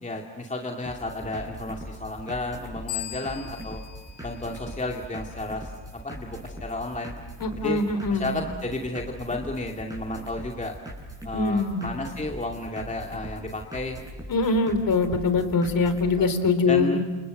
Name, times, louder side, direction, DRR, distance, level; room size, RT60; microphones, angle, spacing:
voice 1, 0.0-3.8 4.2-7.1 7.6-7.8 8.1-10.7 11.2-14.0 14.6-14.7 16.2-16.3 16.7-17.0, left 2 dB, 15° left, 2 dB, 2.3 m, -32 dB
sound 1, 0.9-16.1, equal, 5° right, 7.8 m, -41 dB
sound 2, 2.9-5.4, left 16 dB, 70° left, 2.9 m, -39 dB
voice 2, 7.4-8.3 11.3-11.8 14.3-17.0, left 3 dB, 45° left, 10 dB, 4.0 m, -23 dB
29.5 x 28.5 x 6.6 m, 1.3 s
cardioid pair, 110°, 48 cm